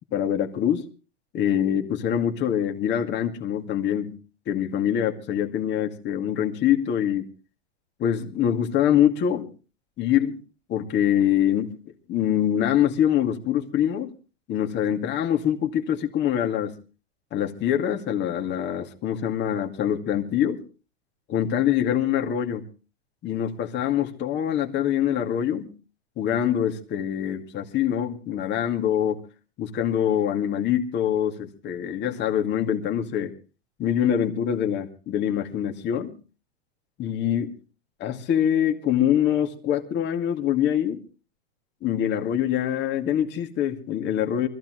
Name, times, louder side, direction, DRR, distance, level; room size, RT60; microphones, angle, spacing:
voice 1, 0.1-0.9 1.3-4.1 4.5-7.3 8.0-9.5 10.0-10.4 10.7-11.7 12.1-14.1 14.5-16.7 17.3-20.6 21.3-22.6 23.2-25.7 26.2-29.2 29.6-33.3 33.8-36.1 37.0-37.5 38.0-41.0 41.8-44.5, left 10 dB, 30° left, 4 dB, 2.3 m, -24 dB
24.0 x 15.0 x 3.1 m, 0.35 s
hypercardioid pair, 135°, 34 cm